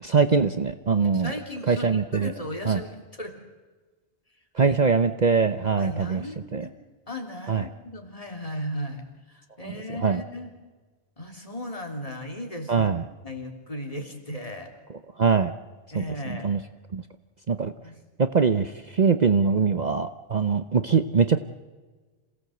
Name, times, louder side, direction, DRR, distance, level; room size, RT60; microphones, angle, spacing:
voice 1, 0.0-1.3 1.7-2.3 2.7-2.8 4.6-6.2 6.5-6.6 7.5-7.7 10.0-10.2 12.7-13.0 15.2-15.5 15.9-16.0 16.4-16.6 16.9-17.0 17.5-17.7 18.2-21.4, right 5 dB, 45° right, 9 dB, 0.9 m, -22 dB
voice 2, 1.1-3.4 4.6-4.7 5.8-6.7 7.1-10.5 11.2-12.9 13.2-14.7 15.9-16.6 17.8-18.0, left 1 dB, 35° left, 3 dB, 3.4 m, -36 dB
27.5 x 17.5 x 7.9 m, 1.3 s
omnidirectional pair, 1.1 m